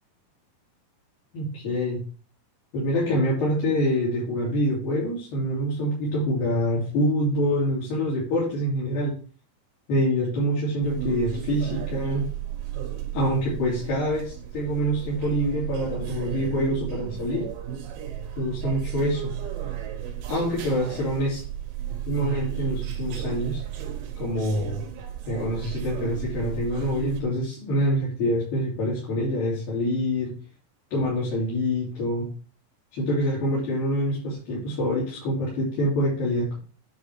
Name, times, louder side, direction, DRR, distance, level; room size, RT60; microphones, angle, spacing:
voice 1, 1.3-2.0 2.7-9.2 9.9-12.3 13.1-17.5 18.4-19.3 20.3-21.4 22.1-23.6 24.2-24.8 25.3-30.3 30.9-32.3 32.9-36.6, equal, 80° left, -7 dB, 4.5 m, -26 dB
Manaus Airport, 10.8-27.2, right 11 dB, 90° right, 2.8 m, -34 dB
9.8 x 3.6 x 4.7 m, 0.39 s
omnidirectional pair, 4.0 m